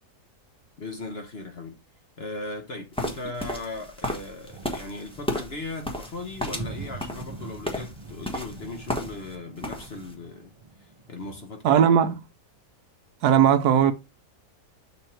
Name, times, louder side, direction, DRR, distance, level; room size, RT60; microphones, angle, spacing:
voice 1, 0.8-1.8 2.2-10.5 10.8-11.8, left 2 dB, 45° left, 1.0 m, -37 dB
sound 1, 2.9-9.3 9.6-10.1, left 1 dB, 5° left, 1.2 m, -33 dB
sound 2, 4.5-11.5, right 3 dB, 50° right, 0.3 m, -43 dB
voice 2, 11.6-12.2 13.2-13.9, right 9 dB, 70° right, 1.1 m, -18 dB
6.8 x 3.5 x 4.4 m
omnidirectional pair, 1.8 m